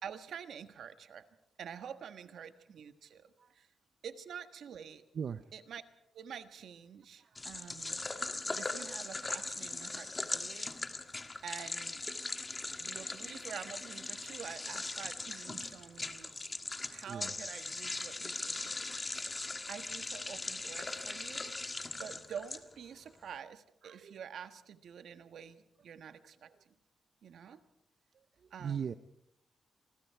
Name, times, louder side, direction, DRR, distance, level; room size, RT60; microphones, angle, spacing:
voice 1, 0.0-1.3 1.6-3.3 3.5-3.7 4.0-5.0 5.5-5.8 6.1-8.0 8.5-10.7 11.4-12.0 12.8-16.3 16.9-19.0 19.7-26.7 27.2-27.6 28.5-28.8, right 8 dB, 75° right, 9 dB, 1.4 m, -48 dB
voice 2, 5.1-5.5 7.2-7.4 12.7-12.8 15.5-15.6 17.1-17.3 23.8-24.1 28.1-28.9, right 7 dB, 60° right, 11 dB, 0.7 m, -41 dB
sound 1, 7.4-23.0, left 2 dB, 25° left, 1.5 m, -40 dB
28.0 x 20.5 x 4.7 m, 0.82 s
cardioid pair, 110°, 0 cm